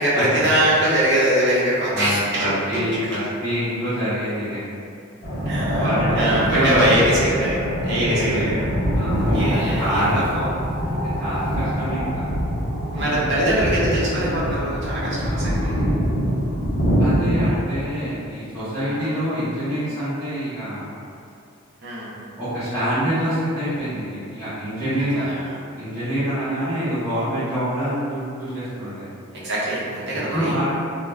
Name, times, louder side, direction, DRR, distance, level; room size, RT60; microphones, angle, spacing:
voice 1, 0.0-2.8 5.5-5.9 6.1-8.5 9.3-10.5 12.9-15.9 18.8-19.1 21.8-22.1 25.1-25.6 29.3-30.5, right 1 dB, 50° right, -8 dB, 0.7 m, -22 dB
voice 2, 1.9-4.6 5.6-6.9 7.9-10.2 10.9-12.2 12.9-13.6 17.0-20.9 22.4-25.3 25.7-29.1 30.3-30.7, equal, ahead, -19 dB, 0.8 m, -26 dB
sound 1, 5.2-17.5, equal, 50° left, 0.8 m, -24 dB
2.3 x 2.1 x 3.1 m, 2.5 s
head